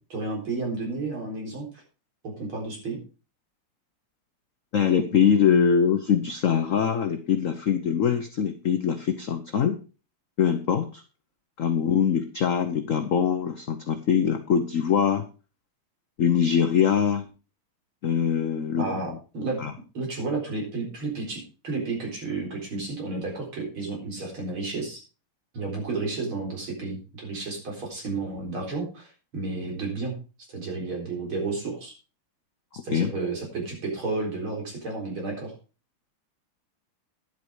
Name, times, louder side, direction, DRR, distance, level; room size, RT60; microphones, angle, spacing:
voice 1, 0.1-1.7 2.2-3.0 18.7-19.6 19.9-25.0 25.5-30.1 30.5-31.9 32.8-35.5, right 3 dB, 70° right, -1 dB, 4.9 m, -32 dB
voice 2, 4.7-9.8 10.4-11.0 11.6-15.2 16.2-17.2 18.0-18.9 19.6-19.7 32.9-33.1, left 7 dB, 55° left, 7 dB, 0.9 m, -23 dB
11.0 x 8.4 x 4.7 m, 0.34 s
omnidirectional pair, 2.4 m